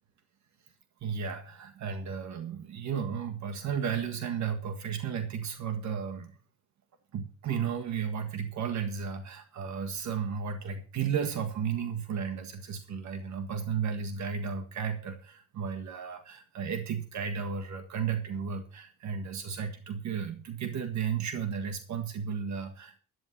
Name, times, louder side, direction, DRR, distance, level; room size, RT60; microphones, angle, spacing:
voice 1, 1.0-6.4 7.1-23.0, right 7 dB, 70° right, 7 dB, 1.6 m, -34 dB
11.0 x 9.3 x 5.6 m, 0.40 s
cardioid pair, 90°, 30 cm